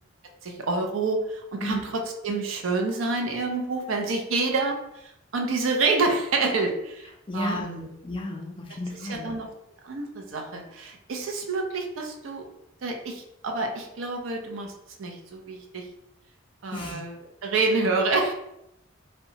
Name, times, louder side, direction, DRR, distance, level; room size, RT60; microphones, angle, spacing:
voice 1, 0.4-4.8 5.3-7.1 7.3-7.9 9.1-9.5 9.8-12.4 12.8-14.7 15.0-15.8 16.6-17.1 17.4-18.3, right 3 dB, 75° right, 3 dB, 0.4 m, -27 dB
voice 2, 7.3-9.3 16.7-17.0, left 1 dB, 25° left, 2 dB, 0.3 m, -33 dB
2.7 x 2.1 x 2.7 m, 0.82 s
head